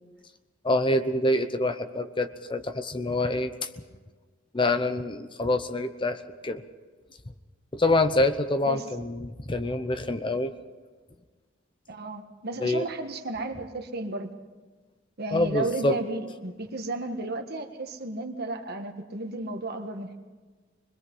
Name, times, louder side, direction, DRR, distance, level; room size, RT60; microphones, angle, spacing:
voice 1, 0.6-3.7 4.5-6.6 7.7-10.5 12.6-12.8 15.3-16.0, left 2 dB, 25° left, 9 dB, 0.9 m, -26 dB
voice 2, 11.9-14.3 15.2-20.2, right 2 dB, 55° right, 5 dB, 1.7 m, -33 dB
24.0 x 21.5 x 5.6 m, 1.3 s
head